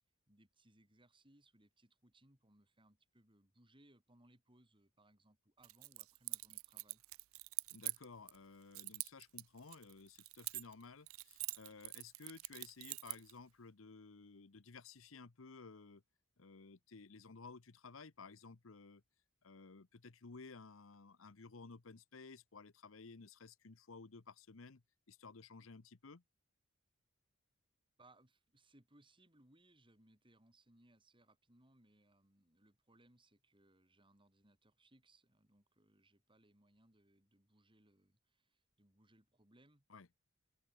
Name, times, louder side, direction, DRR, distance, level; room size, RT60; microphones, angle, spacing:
voice 1, 0.3-7.0 28.0-39.8, right 1 dB, 25° right, 6.3 m, -69 dB
Keys jangling, 5.6-8.4 8.7-10.8 11.1-13.3, right 22 dB, 80° right, 0.5 m, -45 dB
voice 2, 7.7-16.0 16.4-19.0 19.4-24.8 25.1-26.2 39.9-40.1, left 4 dB, 70° left, 0.9 m, -55 dB
head